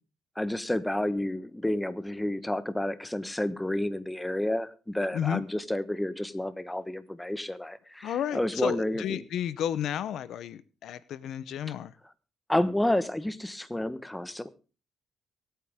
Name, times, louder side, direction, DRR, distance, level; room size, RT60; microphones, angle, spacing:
voice 1, 0.4-9.0 12.5-14.5, left 1 dB, 10° left, 14 dB, 1.3 m, -30 dB
voice 2, 8.0-11.9, left 10 dB, 75° left, 18 dB, 0.8 m, -32 dB
23.5 x 9.1 x 3.6 m, 0.34 s
cardioid pair, 90°, 0 cm